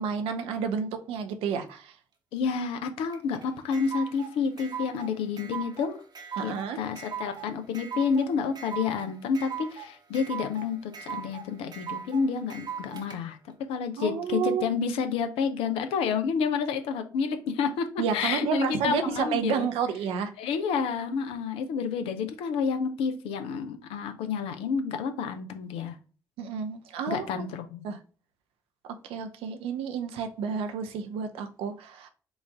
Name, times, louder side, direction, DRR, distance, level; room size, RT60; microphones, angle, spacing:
voice 1, 0.0-2.0 6.4-6.8 14.0-14.7 18.0-20.3 26.4-27.4 27.8-28.0 29.0-32.1, right 6 dB, 65° right, 7 dB, 0.6 m, -30 dB
voice 2, 2.3-6.0 6.4-13.4 13.7-17.9 18.1-19.7 20.4-26.0 27.1-27.8, left 6 dB, 65° left, 8 dB, 0.6 m, -29 dB
sound 1, 3.1-13.2, right 7 dB, 45° right, 1.0 m, -39 dB
5.0 x 2.5 x 3.5 m, 0.37 s
figure-of-eight pair, 40°, 10 cm